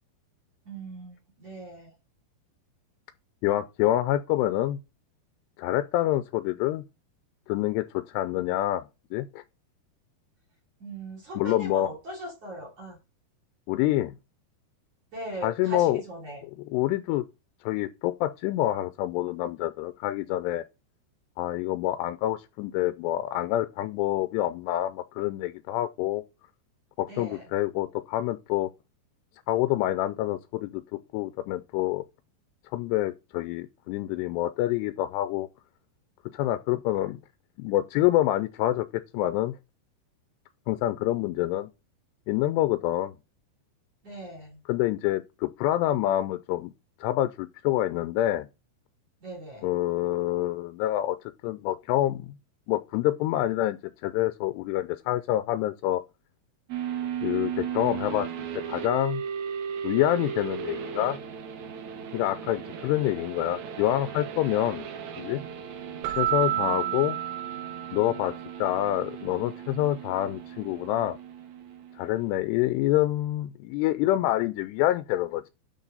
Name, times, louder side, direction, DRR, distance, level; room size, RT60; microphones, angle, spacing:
voice 1, 0.7-1.9 10.8-13.0 15.1-16.4 27.1-27.5 44.0-44.6 49.2-49.7 66.5-66.9, right 2 dB, 40° right, 3.7 m, -39 dB
voice 2, 3.4-4.8 5.6-6.8 7.5-8.8 9.1-9.4 11.4-11.9 13.7-14.2 15.4-16.0 16.7-17.3 17.6-20.6 21.4-26.2 27.0-28.7 29.5-32.0 32.7-35.5 36.3-37.2 37.6-39.6 40.7-41.7 42.3-43.1 44.7-46.7 47.0-48.5 49.6-52.4 52.7-56.0 57.2-58.3 58.6-59.2 59.8-61.2 62.1-64.9 65.2-65.4 66.1-67.2 67.9-71.2 72.0-75.5, left 14 dB, 85° left, 2.6 m, -27 dB
sound 1, 56.7-72.4, right 8 dB, 70° right, 1.8 m, -36 dB
Keyboard (musical), 66.0-68.4, right 12 dB, 85° right, 3.0 m, -30 dB
11.0 x 4.9 x 3.9 m
omnidirectional pair, 4.9 m